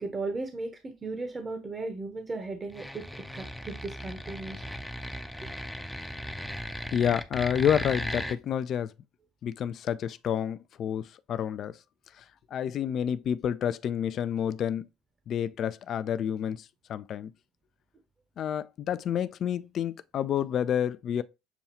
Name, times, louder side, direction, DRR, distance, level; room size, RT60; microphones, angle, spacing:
voice 1, 0.0-3.1 3.3-4.6, right 3 dB, 25° right, 0.8 m, -36 dB
sound 1, 2.7-8.4, equal, ahead, 0.5 m, -37 dB
voice 2, 6.9-8.9 9.4-11.7 12.5-14.9 15.3-16.6 16.9-17.3 18.4-21.2, left 9 dB, 50° left, 0.3 m, -29 dB
6.9 x 2.3 x 2.8 m
supercardioid pair, 80°, 0 cm